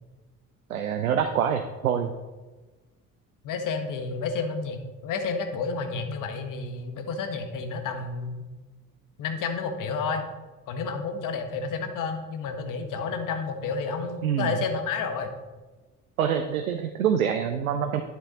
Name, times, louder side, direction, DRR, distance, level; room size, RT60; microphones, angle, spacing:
voice 1, 0.7-2.1 14.2-14.5 16.2-18.0, right 8 dB, 80° right, 7 dB, 0.6 m, -25 dB
voice 2, 3.4-8.4 9.2-10.2 10.7-15.3, left 4 dB, 50° left, 7 dB, 1.4 m, -30 dB
10.5 x 6.7 x 4.1 m, 1.2 s
figure-of-eight pair, 50°, 42 cm